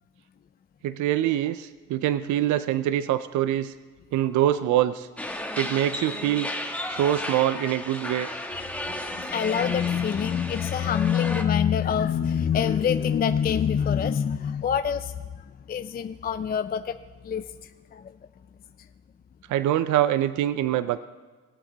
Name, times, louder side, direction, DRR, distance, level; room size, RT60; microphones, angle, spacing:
voice 1, 0.8-3.7 4.1-5.1 5.6-6.5 6.9-8.3 19.5-21.0, right 12 dB, 75° right, 13 dB, 0.5 m, -24 dB
sound 1, 5.2-11.4, left 1 dB, 5° left, 1.3 m, -34 dB
voice 2, 9.1-17.0 17.2-17.5 17.9-18.1, left 8 dB, 30° left, 10 dB, 0.4 m, -25 dB
19.5 x 7.9 x 4.0 m, 1.3 s
cardioid pair, 90°, 30 cm